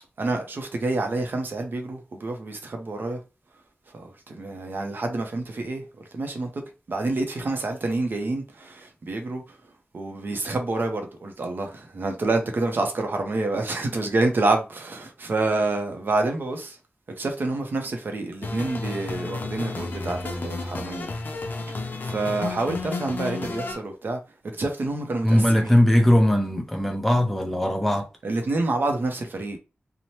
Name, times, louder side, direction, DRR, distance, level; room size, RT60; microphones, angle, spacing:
voice 1, 0.2-3.2 3.9-5.8 6.1-6.6 6.9-9.4 9.9-16.8 17.2-21.1 22.0-24.2 24.6-25.8 28.2-29.6, right 2 dB, 55° right, 0.6 m, -27 dB
sound 1, 18.4-23.7, left 3 dB, 50° left, 0.6 m, -32 dB
voice 2, 25.2-28.1, left 1 dB, 5° left, 0.6 m, -20 dB
2.8 x 2.1 x 3.0 m
wide cardioid pair, 135°, 4 cm